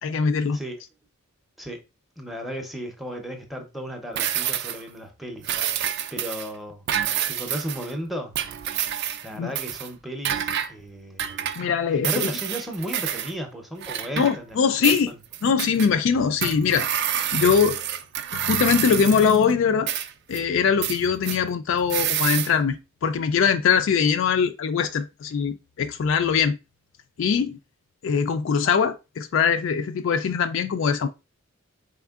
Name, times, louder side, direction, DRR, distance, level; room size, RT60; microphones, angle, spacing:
voice 1, 0.0-0.6 9.4-9.5 11.6-12.3 14.2-15.1 15.4-16.9 17.3-17.8 18.3-19.9 20.3-26.6 27.2-27.6 28.0-31.1, left 6 dB, 60° left, 0.3 m, -22 dB
voice 2, 2.2-6.8 7.2-8.3 9.2-11.6 11.9-15.2, equal, ahead, 0.6 m, -35 dB
sound 1, 4.2-4.9 5.4-6.5 6.9-7.9 8.3-9.3 9.6-9.9 10.2-10.7 11.2-11.7 12.0-13.3 13.8-14.6 14.8-15.9 16.4-19.4 19.9-20.4 20.8-21.4 21.9-22.5, right 10 dB, 50° right, 0.3 m, -28 dB
4.2 x 3.5 x 2.3 m
head